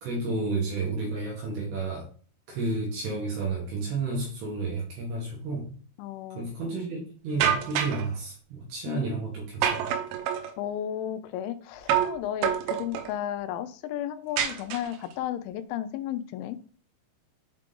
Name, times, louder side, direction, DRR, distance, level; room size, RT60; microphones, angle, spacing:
voice 1, 0.0-2.1 2.5-5.7 6.3-9.9, right 3 dB, 70° right, -2 dB, 3.0 m, -31 dB
voice 2, 6.0-6.5 8.9-9.0 10.6-16.6, left 11 dB, 85° left, 11 dB, 3.0 m, -33 dB
sound 1, 7.4-8.1 9.6-10.5 11.9-12.2 12.4-13.1 14.4-15.1, right 9 dB, 90° right, 3.3 m, -27 dB
7.5 x 3.7 x 3.7 m, 0.42 s
omnidirectional pair, 5.4 m